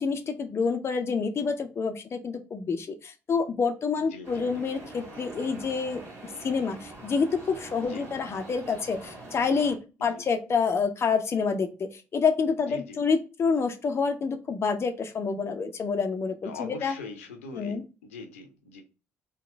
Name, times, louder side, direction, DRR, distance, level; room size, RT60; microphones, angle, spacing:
voice 1, 0.0-6.0 6.4-16.9 17.5-17.8, left 5 dB, 35° left, 5 dB, 0.7 m, -28 dB
voice 2, 4.0-4.5 7.8-8.1 10.0-10.2 12.6-13.0 16.4-17.8 18.0-18.8, left 4 dB, 75° left, 4 dB, 0.9 m, -42 dB
sound 1, 4.2-9.8, right 2 dB, 45° right, 1.8 m, -44 dB
3.8 x 3.0 x 4.6 m, 0.31 s
figure-of-eight pair, 50°, 7 cm